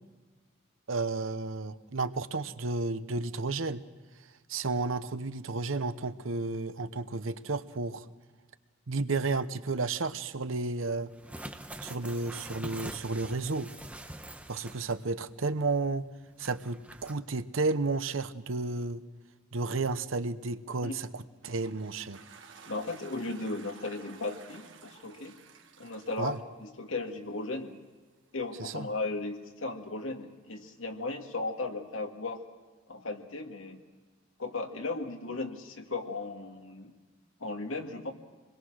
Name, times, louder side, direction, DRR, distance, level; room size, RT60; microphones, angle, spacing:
voice 1, 0.9-3.8 4.5-8.1 8.9-11.1 11.8-13.7 14.5-16.1 16.4-19.0 19.5-22.2 26.2-26.4 28.6-28.9, right 3 dB, 90° right, 12 dB, 0.9 m, -32 dB
sound 1, 11.1-15.1 15.4-15.5 16.4-17.1, right 1 dB, 5° right, 1.0 m, -44 dB
Toilet flush, 21.1-27.4, right 5 dB, 70° right, 1.7 m, -53 dB
voice 2, 22.7-25.4 25.8-27.8 28.3-32.4 32.9-33.8 34.4-36.9 37.4-38.1, left 3 dB, 85° left, 4 dB, 2.1 m, -36 dB
26.5 x 21.5 x 6.4 m, 1.3 s
head